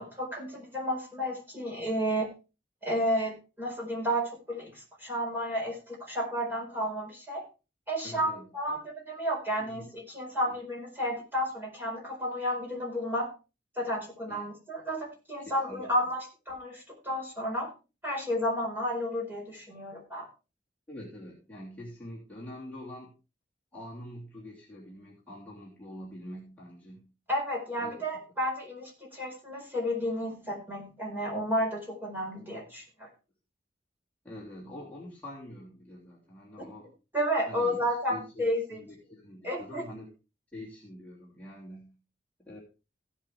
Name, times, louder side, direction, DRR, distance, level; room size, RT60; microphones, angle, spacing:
voice 1, 0.0-2.3 2.8-7.4 7.9-8.8 9.1-13.3 13.8-17.7 18.0-20.3 27.3-33.1 37.1-38.8 39.4-39.8, equal, 10° right, -2 dB, 4.5 m, -32 dB
voice 2, 8.0-8.8 9.6-9.9 10.5-10.6 14.3-14.5 15.4-15.9 20.9-23.1 23.7-27.1 27.8-27.9 34.2-36.9 37.5-37.8 38.1-40.1 40.5-41.9 42.5-42.6, left 1 dB, 10° left, -7 dB, 2.9 m, -45 dB
16.0 x 8.1 x 3.3 m, 0.31 s
head